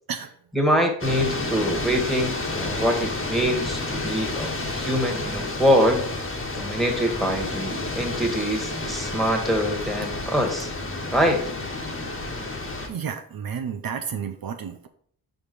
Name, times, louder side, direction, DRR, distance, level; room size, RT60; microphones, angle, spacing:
voice 1, 0.5-6.0 6.5-10.7 11.1-11.4, equal, ahead, 1 dB, 1.7 m, -24 dB
sound 1, 1.0-12.9, left 2 dB, 35° left, 1.4 m, -30 dB
voice 2, 12.9-14.9, right 7 dB, 65° right, 5 dB, 0.7 m, -31 dB
5.1 x 5.0 x 5.5 m, 0.62 s
cardioid pair, 65°, 38 cm